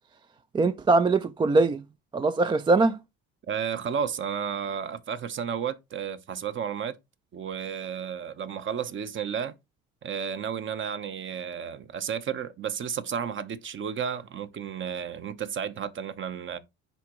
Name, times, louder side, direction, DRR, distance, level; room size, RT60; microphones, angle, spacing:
voice 1, 0.5-1.8 2.1-3.0, right 3 dB, 15° right, 0.3 m, -22 dB
voice 2, 3.5-7.0 7.3-9.5 10.0-16.6, right 7 dB, 35° right, 0.9 m, -32 dB
10.0 x 3.7 x 3.0 m
supercardioid pair, 105°, 33 cm